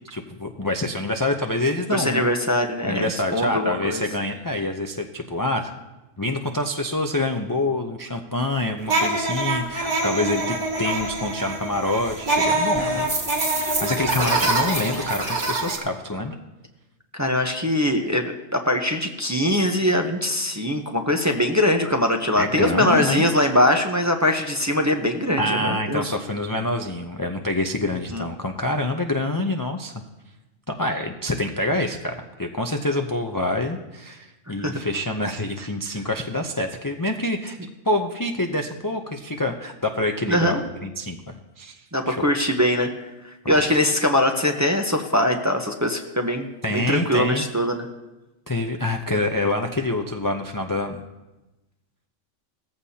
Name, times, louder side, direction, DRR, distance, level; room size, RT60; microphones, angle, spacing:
voice 1, 0.1-2.3 2.8-5.7 6.2-13.1 13.6-16.4 22.4-23.3 25.4-30.0 30.7-37.6 37.8-41.2 41.6-41.8 42.1-42.3 43.4-43.6 46.6-47.4 48.5-51.0, left 1 dB, 25° left, 3 dB, 0.4 m, -26 dB
voice 2, 1.9-4.0 12.8-13.1 17.1-26.0 28.1-28.2 34.5-34.7 40.3-40.6 41.9-42.9 43.5-47.9, left 1 dB, 15° right, 3 dB, 0.7 m, -22 dB
sound 1, 8.9-15.8, right 2 dB, 60° right, 2.9 m, -24 dB
18.0 x 14.5 x 2.8 m, 1.0 s
omnidirectional pair, 1.4 m